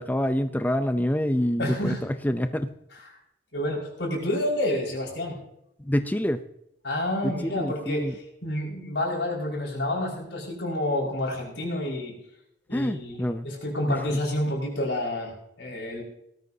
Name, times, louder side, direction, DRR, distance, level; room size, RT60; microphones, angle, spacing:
voice 1, 0.0-2.7 5.8-6.4 7.2-8.1 12.7-13.5 13.9-14.2, equal, 10° left, 9 dB, 0.5 m, -27 dB
voice 2, 1.6-2.0 3.5-5.4 6.8-12.2 12.7-16.0, left 1 dB, 85° left, -2 dB, 5.5 m, -29 dB
19.0 x 13.5 x 2.8 m, 0.77 s
head